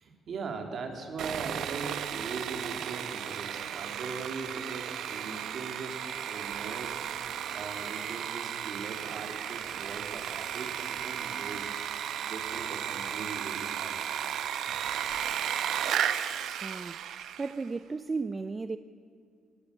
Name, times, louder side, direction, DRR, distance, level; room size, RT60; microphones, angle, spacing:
voice 1, 0.0-7.0 7.5-11.7 12.2-14.2 14.7-14.8, right 4 dB, 55° right, 3.2 m, -40 dB
Sawing, 1.2-17.6, right 9 dB, 75° right, 0.9 m, -34 dB
voice 2, 16.6-17.0 17.4-18.8, right 4 dB, 30° right, 0.5 m, -34 dB
18.0 x 18.0 x 8.3 m
cardioid pair, 90°, 0 cm